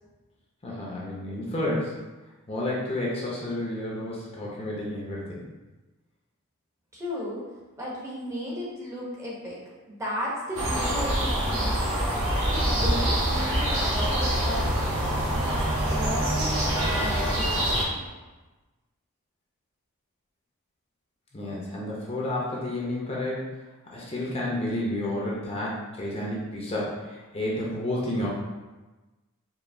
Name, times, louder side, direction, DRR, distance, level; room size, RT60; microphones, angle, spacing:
voice 1, 0.6-1.9 2.5-5.4 21.3-23.5 23.9-28.3, left 1 dB, 25° left, -4 dB, 0.6 m, -31 dB
voice 2, 6.9-7.5 7.8-9.6 9.9-12.0 12.5-14.7 15.2-18.1, left 1 dB, 15° right, -5 dB, 0.8 m, -35 dB
sound 1, 10.5-17.8, right 1 dB, 65° right, 1.1 m, -25 dB
sound 2, 11.8-17.4, right 2 dB, 35° right, 0.3 m, -39 dB
4.8 x 2.8 x 2.6 m, 1.2 s
head